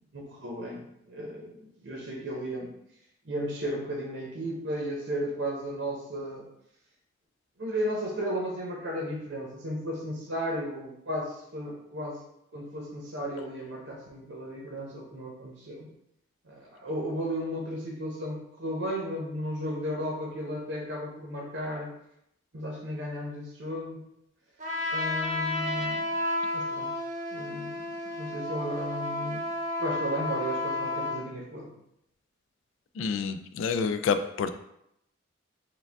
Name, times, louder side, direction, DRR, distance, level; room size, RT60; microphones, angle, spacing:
voice 1, 0.1-2.7 3.2-6.5 7.6-12.2 12.5-15.9 16.4-21.9 22.5-24.0 24.9-26.1 26.5-26.9 27.3-29.5 29.8-31.7, equal, 70° right, -2 dB, 0.8 m, -34 dB
Trumpet, 24.6-31.2, left 2 dB, 40° right, 0.7 m, -32 dB
voice 2, 33.0-34.5, left 5 dB, 85° left, 10 dB, 0.3 m, -28 dB
4.8 x 2.3 x 3.4 m, 0.78 s
head